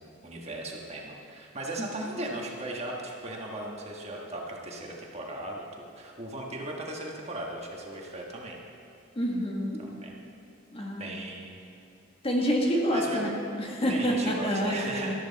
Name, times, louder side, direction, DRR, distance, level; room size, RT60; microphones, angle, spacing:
voice 1, 0.0-8.6 9.8-10.2 11.0-11.6 12.9-13.3 13.9-15.1, right 2 dB, 35° right, -1 dB, 1.6 m, -37 dB
voice 2, 1.8-2.2 9.1-9.8 10.7-11.1 12.2-15.1, equal, 30° left, -1 dB, 1.6 m, -28 dB
13.0 x 13.0 x 4.1 m, 2.8 s
head